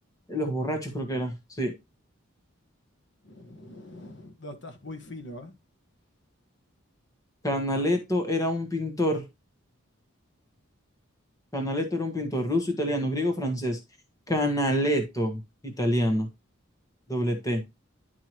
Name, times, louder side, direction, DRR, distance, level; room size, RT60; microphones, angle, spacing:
voice 1, 0.3-1.7 7.4-9.2 11.5-13.8 14.3-16.3 17.1-17.6, equal, 15° left, 1.2 m, -27 dB
voice 2, 3.2-5.5, left 1 dB, 55° left, 1.4 m, -42 dB
10.5 x 4.7 x 2.9 m
head